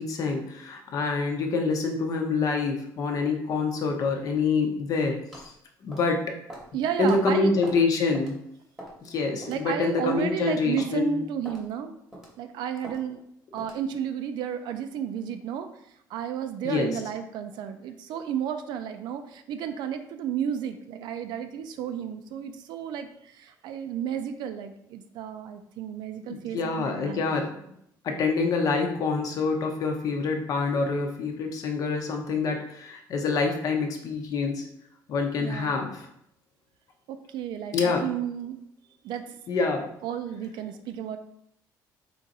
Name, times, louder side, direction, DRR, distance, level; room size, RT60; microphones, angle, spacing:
voice 1, 0.0-5.2 5.4-5.5 5.8-6.2 7.0-8.3 9.0-11.1 16.6-16.9 26.3-27.6 28.0-34.7 35.1-36.1 37.7-38.0 39.5-39.9, left 4 dB, 50° left, 3 dB, 0.7 m, -26 dB
sound 1, 5.3-5.5 5.9-6.1 6.5-6.7 7.0-7.2 7.6-7.9 8.1-8.3 8.8-9.0 9.4-9.6 10.1-10.3 10.8-10.9 11.5-11.6 12.1-12.4 12.8-13.0 13.6-13.8, right 1 dB, 5° right, 1.1 m, -42 dB
voice 2, 6.7-7.5 9.5-11.9 12.4-13.2 13.5-15.7 16.1-27.3 35.4-35.9 37.1-38.6 39.0-39.4 40.0-41.2, right 8 dB, 65° right, 8 dB, 0.4 m, -32 dB
3.8 x 2.5 x 4.0 m, 0.74 s
cardioid pair, 150°, 8 cm